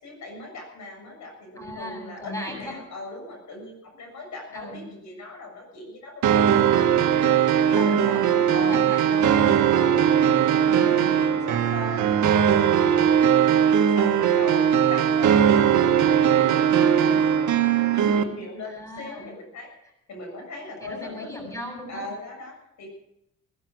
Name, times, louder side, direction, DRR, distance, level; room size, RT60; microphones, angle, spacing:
voice 1, 0.0-7.4 7.7-8.1 8.5-8.8 9.7-21.3 21.9-22.9, left 2 dB, 70° left, 2 dB, 7.0 m, -40 dB
voice 2, 1.6-2.8 4.5-4.9 7.7-9.6 10.6-11.2 18.7-19.3 20.8-22.1, left 1 dB, 10° left, 2 dB, 7.5 m, -37 dB
sound 1, 6.2-18.2, right 9 dB, 70° right, 1.6 m, -19 dB
19.5 x 11.5 x 6.4 m, 0.81 s
cardioid pair, 90°, 30 cm